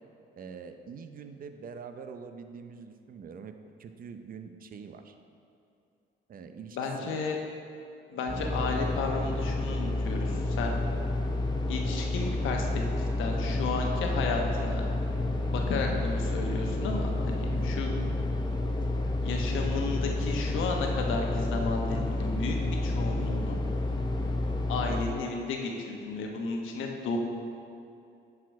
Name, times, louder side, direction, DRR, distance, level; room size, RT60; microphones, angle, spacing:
voice 1, 0.3-3.5 3.8-5.1 6.3-7.4 17.5-17.8, right 6 dB, 45° right, 7 dB, 0.6 m, -44 dB
voice 2, 6.7-7.4 8.1-10.8 11.7-14.8 15.5-17.9 19.2-22.6 22.8-23.6 24.7-27.2, left 4 dB, 85° left, 1 dB, 1.1 m, -33 dB
sound 1, 8.3-25.1, left 2 dB, 20° left, 0.8 m, -30 dB
10.0 x 4.9 x 4.7 m, 2.6 s
cardioid pair, 90°, 20 cm